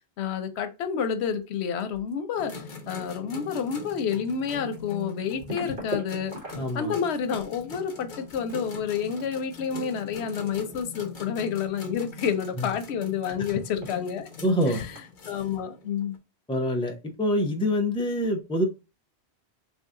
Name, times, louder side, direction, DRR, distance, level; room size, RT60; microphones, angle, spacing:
voice 1, 0.2-2.5 2.9-6.3 6.7-14.3 14.7-15.0 15.3-16.2, left 7 dB, 85° left, 0.9 m, -29 dB
sound 1, 1.0-2.2 2.4-15.2, equal, 55° right, 1.8 m, -43 dB
sound 2, 2.4-16.2, left 4 dB, 55° left, 1.0 m, -42 dB
voice 2, 6.6-6.9 12.6-12.7 14.4-14.8 16.5-18.7, equal, 5° left, 0.4 m, -25 dB
3.1 x 2.7 x 3.6 m
omnidirectional pair, 1.1 m